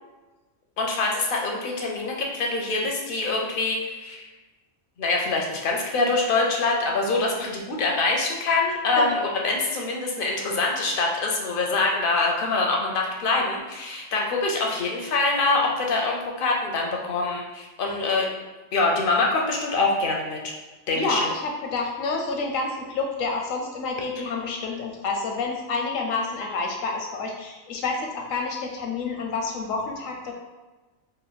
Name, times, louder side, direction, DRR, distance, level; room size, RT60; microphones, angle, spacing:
voice 1, 0.8-4.3 5.0-18.3 18.7-20.4 20.9-21.3, left 3 dB, 60° left, 0 dB, 0.6 m, -24 dB
voice 2, 21.0-30.3, left 3 dB, 85° left, 1 dB, 1.0 m, -29 dB
3.2 x 2.1 x 4.0 m, 1.2 s
omnidirectional pair, 1.4 m